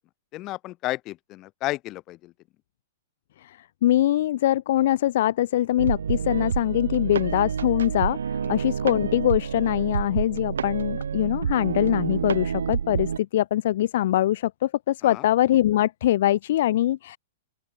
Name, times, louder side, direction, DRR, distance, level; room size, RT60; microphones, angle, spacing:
voice 1, 0.3-2.3 8.4-8.6 15.0-15.3, left 17 dB, 35° left, 7.6 m, -33 dB
voice 2, 3.4-17.2, left 13 dB, 60° left, 0.5 m, -23 dB
sound 1, 5.8-13.2, right 7 dB, 85° right, 1.6 m, -28 dB
open air
hypercardioid pair, 125°, 0 cm